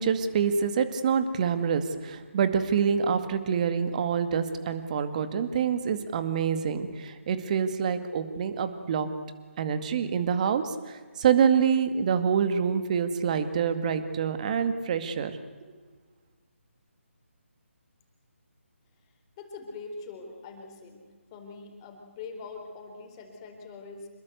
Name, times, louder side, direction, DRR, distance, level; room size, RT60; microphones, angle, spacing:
voice 1, 0.0-9.1 9.6-15.3, right 7 dB, 35° right, 10 dB, 2.1 m, -26 dB
voice 2, 19.4-21.0 21.3-24.1, left 4 dB, 20° left, 4 dB, 4.2 m, -43 dB
26.5 x 21.5 x 8.1 m, 1.5 s
figure-of-eight pair, 150°, 7 cm